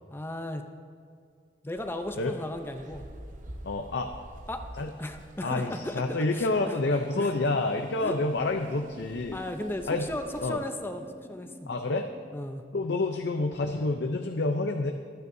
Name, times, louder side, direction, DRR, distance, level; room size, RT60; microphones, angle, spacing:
voice 1, 0.1-0.7 1.6-3.0 4.5-4.7 5.0-6.8 7.1-7.3 8.0-8.2 8.6-8.7 9.3-11.7 12.3-12.6, left 1 dB, 15° left, 6 dB, 0.6 m, -36 dB
sound 1, 1.7-10.5, right 1 dB, 50° right, 1.0 m, -49 dB
voice 2, 3.6-4.1 4.8-4.9 5.4-9.4 9.9-10.1 10.4-10.6 11.7-12.1 12.7-14.9, left 2 dB, 80° left, 5 dB, 0.6 m, -28 dB
sound 2, 7.2-12.2, equal, 25° right, 1.6 m, -50 dB
24.0 x 9.4 x 2.7 m, 2.2 s
head